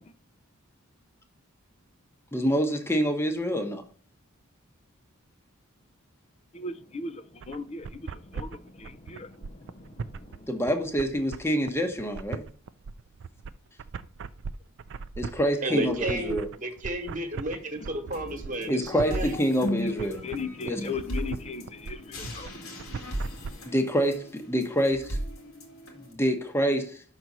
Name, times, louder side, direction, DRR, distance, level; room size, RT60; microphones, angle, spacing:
voice 1, 2.3-3.8 10.5-12.4 15.2-16.5 18.7-20.2 20.6-20.9 23.7-25.2 26.0-27.0, equal, 10° left, 0.9 m, -26 dB
voice 2, 6.5-10.5 17.7-23.7, left 2 dB, 30° left, 0.5 m, -38 dB
sound 1, 7.4-23.5, right 5 dB, 55° right, 0.4 m, -39 dB
voice 3, 15.6-19.3, right 1 dB, 35° right, 1.4 m, -32 dB
sound 2, 18.1-26.1, right 1 dB, 70° left, 2.2 m, -39 dB
6.0 x 4.0 x 6.0 m
head